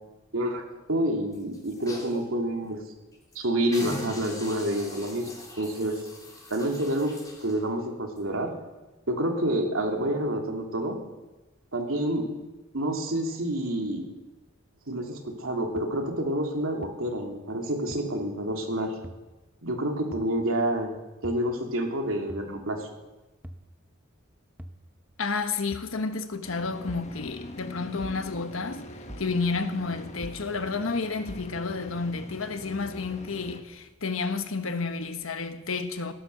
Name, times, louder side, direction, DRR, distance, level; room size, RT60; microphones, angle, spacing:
voice 1, 0.3-2.8 3.3-6.0 6.5-7.1 7.4-8.5 9.1-11.0 11.7-12.3 12.7-14.1 14.9-18.9 19.6-20.9 21.2-22.9, right 1 dB, 85° right, 2.7 m, -28 dB
sound 1, 1.3-2.2 2.7-2.8 3.1-3.4 3.7-7.6 8.2-8.3, left 2 dB, 15° left, 3.2 m, -42 dB
sound 2, 15.8-15.9 16.8-16.9 17.9-18.0 19.0-19.2 20.1-20.3 21.2-21.4 22.3-22.5 23.4-23.7 24.6-24.8 25.7-25.9 26.9-27.1 28.0-28.2 29.1-29.3 30.2-30.4 31.3-31.5, equal, 5° right, 0.9 m, -42 dB
voice 2, 25.2-28.8 29.2-36.1, left 4 dB, 75° left, 1.2 m, -31 dB
sound 3, 26.4-33.6, left 1 dB, 35° left, 1.2 m, -43 dB
17.5 x 10.5 x 6.7 m
head